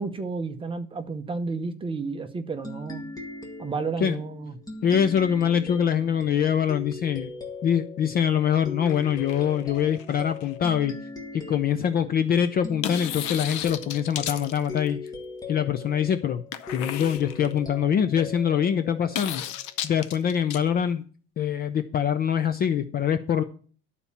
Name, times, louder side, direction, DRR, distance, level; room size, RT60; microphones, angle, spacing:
voice 1, 0.0-3.1 3.6-4.6, right 4 dB, 15° right, 0.7 m, -31 dB
sound 1, 2.6-19.8, left 3 dB, 10° left, 1.3 m, -40 dB
voice 2, 4.8-7.3 7.6-10.9 11.3-15.0 15.5-16.4 16.7-19.4 19.8-21.0 21.4-23.4, left 8 dB, 30° left, 0.4 m, -24 dB
sound 2, 8.8-10.5 12.8-15.1 16.5-17.6 19.1-20.6, left 10 dB, 60° left, 0.8 m, -35 dB
11.5 x 4.2 x 7.0 m
cardioid pair, 160°, 33 cm